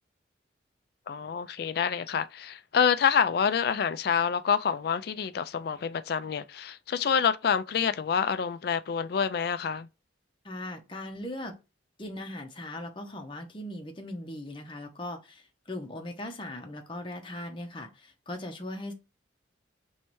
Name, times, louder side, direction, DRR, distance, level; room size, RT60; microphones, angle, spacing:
voice 1, 1.1-9.9, left 7 dB, 55° left, 0.3 m, -27 dB
voice 2, 10.4-11.6 12.0-18.9, left 1 dB, 25° left, 0.8 m, -39 dB
5.5 x 3.2 x 3.1 m
head